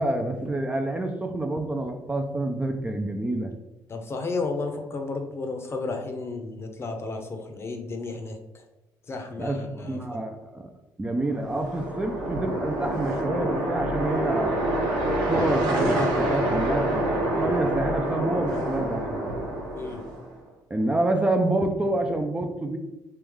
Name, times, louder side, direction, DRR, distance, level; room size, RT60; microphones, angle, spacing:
voice 1, 0.0-3.5 9.4-10.7 11.0-14.6 15.2-17.0 17.4-19.2 20.7-22.8, right 2 dB, 15° right, 4 dB, 0.4 m, -27 dB
voice 2, 3.9-8.6 9.1-10.2 19.8-20.0, left 3 dB, 35° left, 4 dB, 0.7 m, -33 dB
sound 1, 11.3-20.3, right 1 dB, 85° right, 1.0 m, -27 dB
3.3 x 3.1 x 3.5 m, 0.99 s
supercardioid pair, 85°, 7 cm